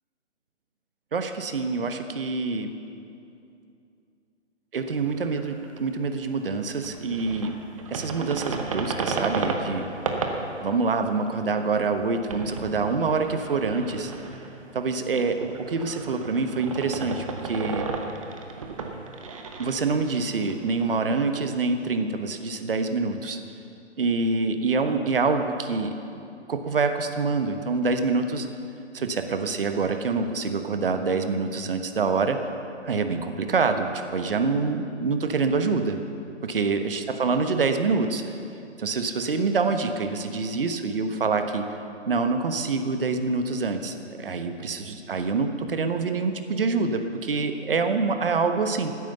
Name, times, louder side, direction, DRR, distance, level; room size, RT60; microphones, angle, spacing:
voice 1, 1.1-2.7 4.7-7.6 7.9-9.9 10.6-14.1 14.7-17.9 19.6-23.4 24.0-25.9 26.5-28.5 28.9-32.5 32.8-36.0 36.4-38.3 38.8-41.6 42.1-48.9, right 4 dB, 50° right, 7 dB, 1.2 m, -26 dB
sound 1, 4.9-6.2 6.4-21.3, right 4 dB, 30° right, 0.9 m, -34 dB
15.0 x 9.6 x 6.9 m, 2.6 s
figure-of-eight pair, 150°, 36 cm